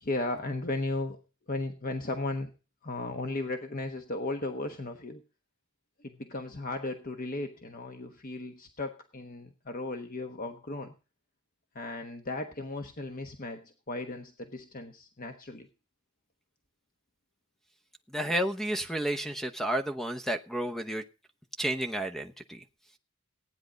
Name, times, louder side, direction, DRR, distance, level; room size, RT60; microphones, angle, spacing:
voice 1, 0.0-1.2 1.5-2.5 2.8-5.2 6.0-10.9 11.7-15.7, left 2 dB, 45° left, 6 dB, 1.2 m, -36 dB
voice 2, 18.1-21.0 21.6-22.6, right 1 dB, ahead, 8 dB, 0.8 m, -31 dB
15.5 x 9.6 x 5.1 m, 0.33 s
head